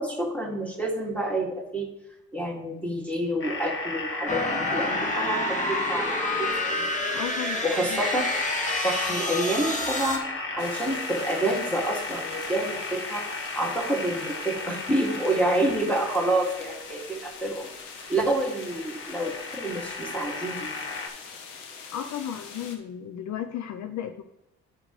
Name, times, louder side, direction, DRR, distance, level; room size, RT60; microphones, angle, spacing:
voice 1, 0.0-1.9 2.3-6.9 7.6-8.2 8.8-10.2 10.6-13.3 13.5-17.7 18.1-20.8, right 1 dB, 5° left, 0 dB, 2.3 m, -28 dB
sound 1, 3.4-21.1, left 3 dB, 40° left, 1.6 m, -35 dB
sound 2, 4.3-10.2, left 1 dB, 25° left, 1.7 m, -28 dB
voice 2, 7.1-8.0 18.3-18.4 21.9-24.2, left 9 dB, 65° left, 10 dB, 0.6 m, -34 dB
sound 3, 10.6-22.8, left 5 dB, 85° left, 1.0 m, -44 dB
11.5 x 5.0 x 3.2 m, 0.90 s
supercardioid pair, 65°, 31 cm